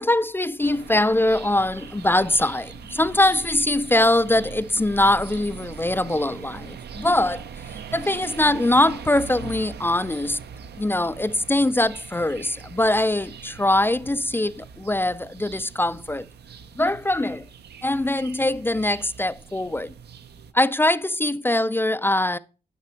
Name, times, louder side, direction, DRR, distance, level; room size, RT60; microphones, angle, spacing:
voice 1, 0.0-7.4 7.9-10.4 10.8-16.2 16.8-17.4 17.8-19.9 20.5-22.4, left 1 dB, 10° left, 0.4 m, -22 dB
sound 1, 0.6-20.5, right 6 dB, 75° right, 0.8 m, -41 dB
10.5 x 5.9 x 4.4 m
cardioid pair, 100°, 17 cm